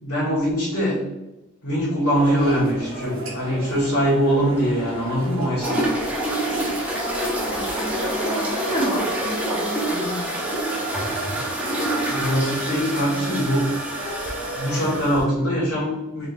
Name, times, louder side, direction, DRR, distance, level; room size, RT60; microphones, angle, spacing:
voice 1, 0.0-1.0 1.6-5.7 12.1-13.7 14.5-16.3, equal, 75° left, -11 dB, 1.4 m, -22 dB
sound 1, 2.1-15.0, right 1 dB, 60° right, 0.7 m, -35 dB
sound 2, 5.6-15.2, right 1 dB, 5° right, 0.6 m, -27 dB
voice 2, 6.9-10.3, equal, 25° left, -5 dB, 1.1 m, -30 dB
3.7 x 3.3 x 2.5 m, 0.99 s
head